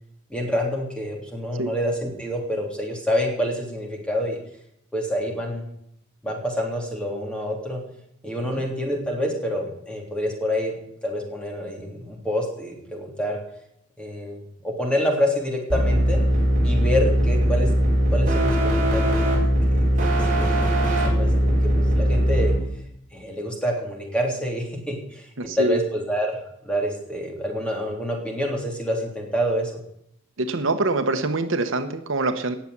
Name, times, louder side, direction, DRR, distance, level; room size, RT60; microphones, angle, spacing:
voice 1, 0.3-4.4 4.9-5.6 6.2-7.8 8.2-10.8 11.0-13.4 14.0-16.2 16.6-17.7 18.1-22.5 23.1-26.4 26.6-29.8, equal, 5° left, 0 dB, 3.4 m, -27 dB
sound 1, 15.7-22.6, equal, 40° right, 4.8 m, -20 dB
voice 2, 25.4-25.8 30.4-32.5, right 2 dB, 65° right, 8 dB, 1.0 m, -24 dB
18.5 x 7.3 x 8.2 m, 0.74 s
head